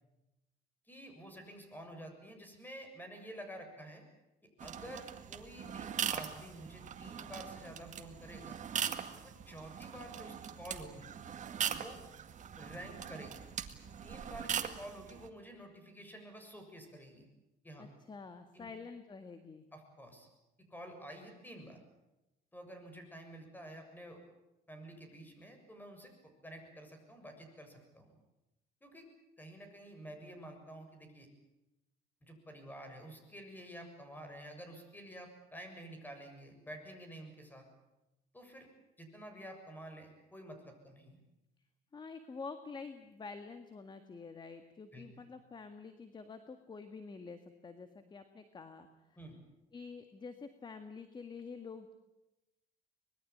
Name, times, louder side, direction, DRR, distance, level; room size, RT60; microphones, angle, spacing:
voice 1, 0.9-4.0 4.6-8.6 9.2-11.1 11.7-12.0 12.6-13.5 14.0-17.3 17.6-17.9 18.5-18.7 19.7-20.3 20.7-21.8 22.5-24.2 24.7-28.2 28.8-29.1 29.4-31.3 32.2-37.6 38.3-38.7 39.0-41.2 44.9-45.3 49.2-49.4, right 1 dB, 10° left, 6 dB, 7.0 m, -50 dB
sound 1, 4.6-15.3, right 8 dB, 45° right, 1.9 m, -41 dB
voice 2, 17.8-19.7 41.9-48.9 49.7-51.9, left 4 dB, 25° left, 9 dB, 1.8 m, -48 dB
25.0 x 21.0 x 8.7 m, 0.95 s
cardioid pair, 110°, 17 cm